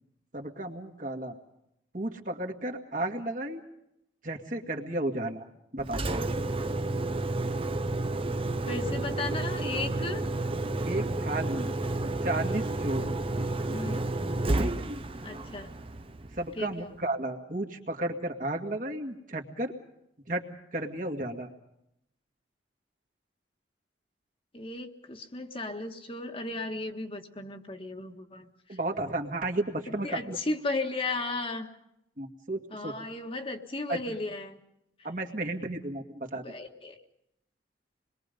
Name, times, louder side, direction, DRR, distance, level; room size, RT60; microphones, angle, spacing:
voice 1, 0.3-1.4 1.9-3.6 4.2-5.5 5.7-6.3 10.8-11.7 12.2-13.1 14.6-14.8 16.3-19.7 20.3-20.5 20.7-21.5 28.7-30.4 32.2-32.9 33.9-34.2 35.0-36.4, right 2 dB, 45° right, 2 dB, 2.2 m, -33 dB
Engine, 5.8-16.7, right 2 dB, 30° right, 0.9 m, -31 dB
voice 2, 8.7-10.2 13.7-14.0 15.2-15.7 16.6-16.9 24.5-28.8 29.9-31.7 32.7-34.6 36.4-37.0, left 2 dB, 30° left, 4 dB, 1.6 m, -35 dB
27.5 x 22.0 x 5.3 m, 0.79 s
head